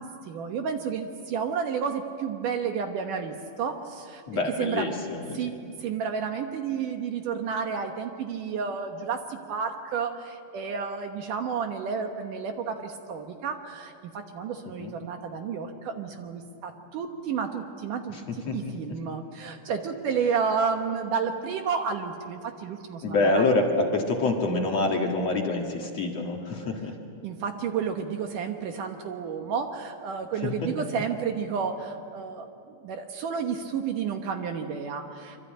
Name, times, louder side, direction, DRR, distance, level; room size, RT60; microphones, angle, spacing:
voice 1, 0.0-4.2 4.6-4.9 5.3-5.5 5.8-18.2 18.5-23.5 27.2-32.5 32.8-35.5, right 6 dB, 65° right, 5 dB, 2.4 m, -31 dB
voice 2, 4.3-5.4 14.8-14.9 18.1-18.2 18.5-18.6 23.0-27.0 30.4-30.5, left 2 dB, 50° left, 1 dB, 2.4 m, -26 dB
25.0 x 25.0 x 9.0 m, 2.5 s
omnidirectional pair, 4.5 m